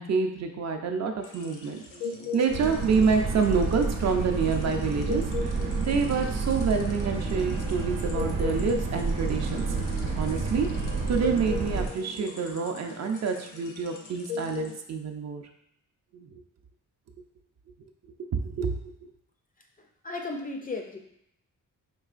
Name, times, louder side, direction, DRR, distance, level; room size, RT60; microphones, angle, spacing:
voice 1, 0.0-1.8 2.3-9.6 10.1-10.7 11.1-15.4 16.1-16.4 18.2-18.8, right 5 dB, 55° right, 4 dB, 0.5 m, -27 dB
sound 1, 1.2-14.8, left 4 dB, 70° left, 0.7 m, -40 dB
Boat Water vehicle, 2.5-11.9, right 4 dB, 85° right, 0.8 m, -30 dB
voice 2, 19.8-21.0, left 3 dB, 25° left, 2 dB, 0.4 m, -35 dB
4.6 x 3.1 x 2.4 m, 0.77 s
wide cardioid pair, 135°, 32 cm